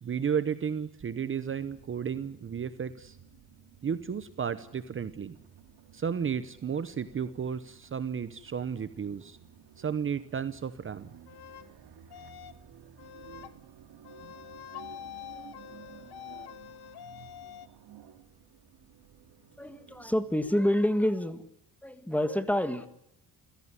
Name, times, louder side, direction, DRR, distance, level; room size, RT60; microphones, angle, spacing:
voice 1, 0.0-3.2 3.8-5.4 5.9-9.4 9.8-11.1, right 7 dB, 30° right, 13 dB, 1.0 m, -33 dB
sound 1, 1.5-20.5, right 9 dB, 80° right, 2.8 m, -54 dB
sound 2, 11.3-11.7 12.1-12.6 13.0-13.5 14.0-17.7, left 12 dB, 70° left, 1.6 m, -46 dB
voice 2, 19.6-21.4 21.8-22.9, left 1 dB, 5° left, 11 dB, 1.6 m, -27 dB
28.0 x 16.5 x 9.7 m, 0.81 s
cardioid pair, 165°, 39 cm